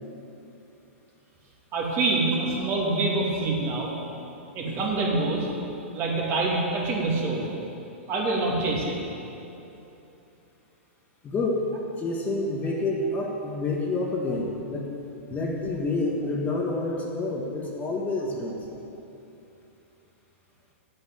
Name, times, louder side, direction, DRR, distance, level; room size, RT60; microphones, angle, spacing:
voice 1, 1.7-3.9 4.5-5.5 5.9-7.5 8.1-9.0, right 3 dB, 35° right, -3 dB, 2.6 m, -25 dB
voice 2, 11.2-11.7 12.0-14.9 15.3-18.6, left 2 dB, 20° left, -1 dB, 1.5 m, -28 dB
8.4 x 7.9 x 8.8 m, 2.9 s
hypercardioid pair, 125°, 7 cm